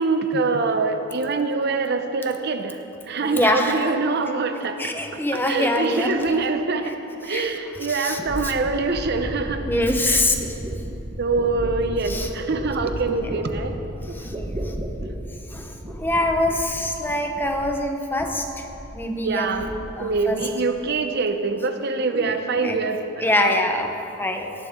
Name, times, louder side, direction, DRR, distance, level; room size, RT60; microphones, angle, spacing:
voice 1, 0.0-2.8 3.1-4.9 5.5-6.9 7.2-9.6 10.1-10.2 11.2-13.7 14.1-14.2 19.2-23.6, right 3 dB, 55° right, 7 dB, 0.7 m, -24 dB
voice 2, 3.2-3.9 4.8-6.4 6.8-6.9 7.2-7.5 7.8-8.5 9.7-10.4 12.0-12.3 13.1-13.3 14.1-14.5 15.5-15.7 16.0-18.6 18.9-19.5 20.0-20.4 22.1-22.8 23.2-24.5, left 1 dB, 10° left, 3 dB, 0.9 m, -24 dB
sound 1, 7.4-7.5 8.2-17.9 18.1-19.0 19.3-20.1 20.4-20.9, equal, 25° right, 1.2 m, -33 dB
18.0 x 11.0 x 3.7 m, 3.0 s
head